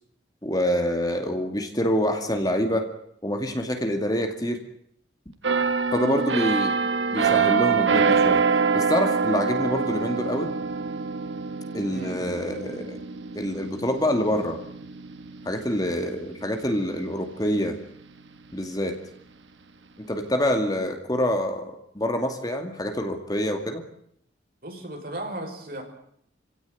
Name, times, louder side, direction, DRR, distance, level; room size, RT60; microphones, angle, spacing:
voice 1, 0.4-2.9 3.2-4.6 5.9-6.8 7.1-8.4 8.7-10.5 11.7-13.0 13.3-14.6 15.4-17.8 18.5-19.0 20.0-23.8, equal, 20° left, 5 dB, 2.4 m, -26 dB
sound 1, 5.4-17.0 17.4-17.7, right 5 dB, 85° right, 1.8 m, -25 dB
voice 2, 24.6-25.8, right 1 dB, 55° right, 3 dB, 5.8 m, -35 dB
27.0 x 17.0 x 9.4 m, 0.70 s
head